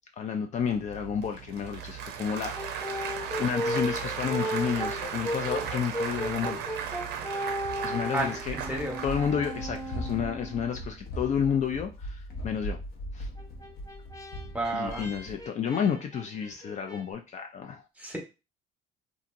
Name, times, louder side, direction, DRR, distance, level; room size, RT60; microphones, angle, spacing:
voice 1, 0.2-2.9 3.4-6.6 7.8-8.6 9.0-12.8 13.1-13.3 14.7-17.8, left 7 dB, 45° left, 4 dB, 0.4 m, -31 dB
Applause / Crowd, 0.6-10.1, right 7 dB, 75° right, 0.5 m, -36 dB
Brass instrument, 2.5-10.9 13.4-17.0, equal, 20° left, 0.8 m, -36 dB
Run, 8.4-15.4, equal, 70° left, 0.7 m, -39 dB
voice 2, 8.5-9.0 14.5-15.1 18.0-18.2, right 2 dB, 10° right, 1 dB, 1.0 m, -31 dB
2.8 x 2.5 x 2.5 m, 0.29 s
cardioid pair, 110°, 17 cm